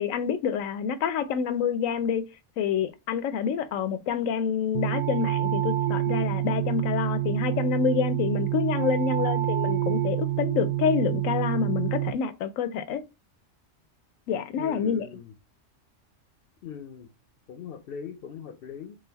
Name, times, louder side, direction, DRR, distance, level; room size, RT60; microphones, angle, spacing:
voice 1, 0.0-2.2 2.6-13.0 14.3-15.1, left 7 dB, 90° left, 1.0 m, -27 dB
sound 1, 4.7-12.1, right 13 dB, 65° right, 0.5 m, -27 dB
voice 2, 14.6-15.3 16.6-17.1 17.5-19.0, left 7 dB, 60° left, 0.7 m, -40 dB
4.0 x 2.5 x 3.9 m
omnidirectional pair, 1.3 m